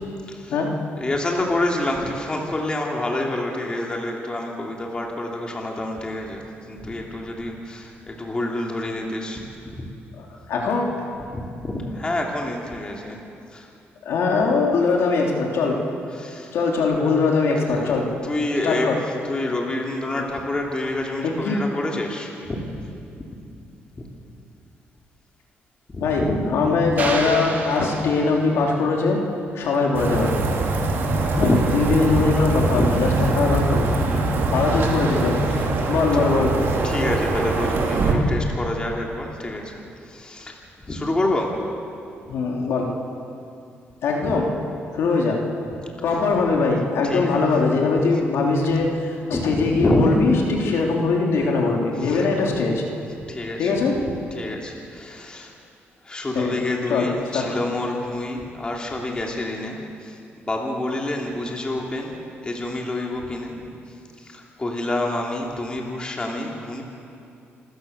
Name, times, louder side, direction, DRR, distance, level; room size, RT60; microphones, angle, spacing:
voice 1, 1.0-9.5 9.7-9.9 11.3-13.2 13.5-13.7 16.1-17.1 17.6-17.9 18.2-18.9 19.2-22.9 24.0-24.1 25.9-27.0 31.1-31.7 32.6-32.9 34.2-34.3 35.6-35.7 36.1-36.2 36.8-40.5 40.9-41.5 44.2-44.4 47.0-47.3 49.3-50.2 52.0-52.3 53.3-53.8 54.3-55.5 56.0-62.2 62.4-63.6 64.2-66.8, left 1 dB, 20° left, 0 dB, 2.7 m, -28 dB
voice 2, 10.2-10.9 14.0-15.8 16.5-18.1 18.6-19.0 21.2-21.6 26.0-26.2 26.5-29.2 29.5-30.4 31.4-33.1 33.3-34.2 34.5-35.4 35.9-36.5 42.3-42.9 44.0-44.5 44.9-45.4 46.0-52.8 53.6-54.0 56.3-56.5 56.9-57.5, left 4 dB, 70° left, 0 dB, 3.2 m, -21 dB
sound 1, 27.0-28.7, right 3 dB, 40° right, 3.2 m, -30 dB
sound 2, 29.9-38.1, right 2 dB, 55° right, 2.9 m, -22 dB
27.0 x 14.5 x 6.8 m, 2.6 s
cardioid pair, 120°, 4 cm